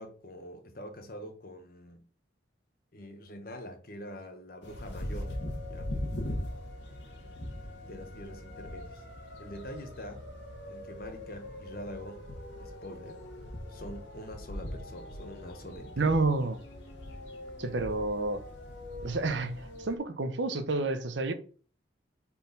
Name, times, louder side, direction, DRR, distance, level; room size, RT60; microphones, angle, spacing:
voice 1, 0.0-2.1 2.9-5.3 5.7-5.9 7.8-9.0 9.4-10.3 10.7-12.3 12.6-13.3 13.7-16.2, equal, 50° left, 1.1 m, -44 dB
sound 1, 4.6-20.0, left 1 dB, 75° left, 1.6 m, -41 dB
voice 2, 16.0-16.6 17.6-18.4 19.0-21.3, right 3 dB, 75° right, 0.8 m, -29 dB
4.3 x 4.2 x 5.2 m
head